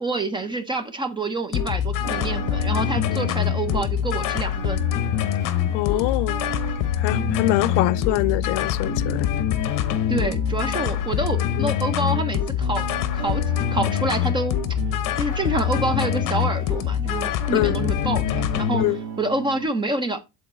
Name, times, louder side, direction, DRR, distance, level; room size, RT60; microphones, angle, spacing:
voice 1, 0.0-4.8 10.1-12.9 13.1-13.4 13.7-14.6 15.1-18.8 19.2-20.2, right 2 dB, 10° right, 0.5 m, -27 dB
sound 1, 1.5-18.9, left 11 dB, 50° left, 0.8 m, -24 dB
sound 2, 2.0-19.6, right 6 dB, 70° right, 2.0 m, -36 dB
voice 2, 5.7-6.4 7.0-9.3 11.6-11.7 17.5-17.8 18.8-19.0, left 19 dB, 80° left, 0.5 m, -24 dB
7.6 x 4.0 x 4.2 m
cardioid pair, 170°, 42 cm